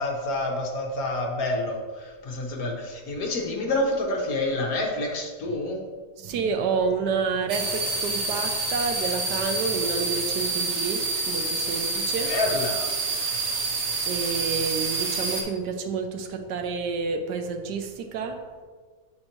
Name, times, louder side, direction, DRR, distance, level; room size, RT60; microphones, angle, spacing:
voice 1, 0.0-5.8 12.2-12.9, left 2 dB, 60° left, 0 dB, 1.2 m, -28 dB
voice 2, 6.2-12.3 14.1-18.4, right 5 dB, 75° right, 5 dB, 1.2 m, -29 dB
sound 1, 7.5-15.4, right 3 dB, 50° right, 1.0 m, -28 dB
7.5 x 4.4 x 2.9 m, 1.5 s
omnidirectional pair, 1.9 m